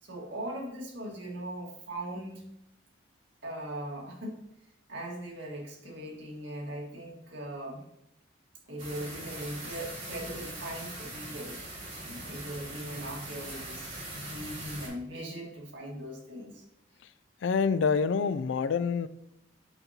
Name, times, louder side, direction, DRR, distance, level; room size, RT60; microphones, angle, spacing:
voice 1, 0.0-2.5 3.4-4.4 4.9-7.8 8.7-11.6 12.0-16.6, right 1 dB, 80° right, 1.7 m, -40 dB
sound 1, 8.8-14.9, right 2 dB, 35° right, 2.7 m, -41 dB
voice 2, 17.4-19.1, left 5 dB, 85° left, 0.3 m, -26 dB
8.1 x 5.3 x 2.8 m
head